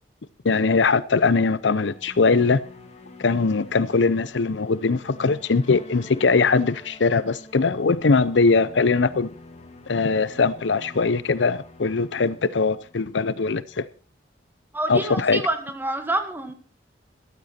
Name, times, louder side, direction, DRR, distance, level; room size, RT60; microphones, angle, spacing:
voice 1, 0.4-2.6 3.2-9.3 9.9-13.8 14.9-15.4, left 4 dB, 75° left, 0.7 m, -21 dB
sound 1, 1.4-13.9, left 1 dB, 35° left, 1.9 m, -47 dB
voice 2, 14.7-16.5, right 1 dB, 10° right, 1.9 m, -27 dB
13.5 x 13.0 x 4.3 m
head